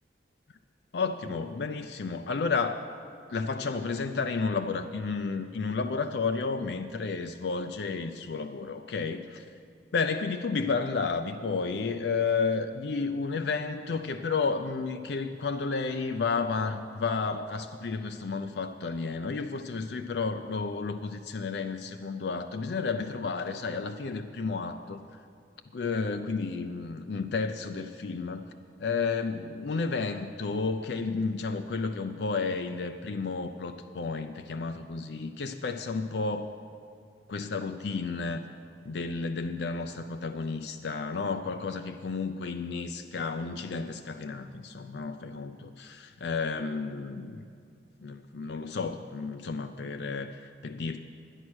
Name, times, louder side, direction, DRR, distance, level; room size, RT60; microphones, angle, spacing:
voice 1, 0.9-2.9 3.3-9.5 9.9-25.0 25.7-28.4 28.8-36.5 37.3-38.4 38.8-47.5 48.0-51.0, left 4 dB, 65° left, 7 dB, 0.5 m, -32 dB
11.0 x 9.9 x 6.2 m, 2.3 s
head